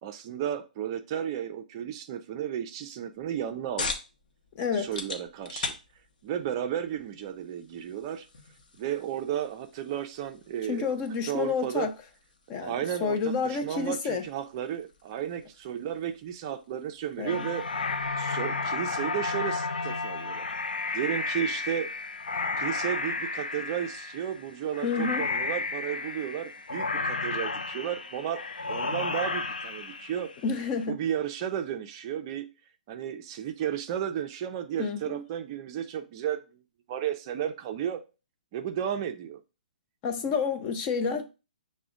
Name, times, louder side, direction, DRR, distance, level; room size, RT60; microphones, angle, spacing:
voice 1, 0.0-3.9 4.7-5.8 6.2-8.3 8.8-10.9 11.3-11.9 12.6-13.2 13.4-17.6 18.2-20.5 20.9-21.9 22.6-28.4 28.7-30.3 30.9-32.5 32.9-36.6 36.9-38.0 38.5-39.4, right 10 dB, 30° right, 0.4 m, -33 dB
sound 1, 3.1-18.3, left 4 dB, 60° left, 0.8 m, -43 dB
voice 2, 4.5-4.9 10.7-11.9 12.5-14.2 17.2-17.5 24.8-25.3 30.4-31.0 34.8-35.2 40.0-41.3, left 5 dB, 25° left, 0.5 m, -29 dB
sound 2, 17.3-30.7, left 3 dB, 90° left, 0.4 m, -32 dB
5.8 x 2.1 x 3.7 m
hypercardioid pair, 145°, 5 cm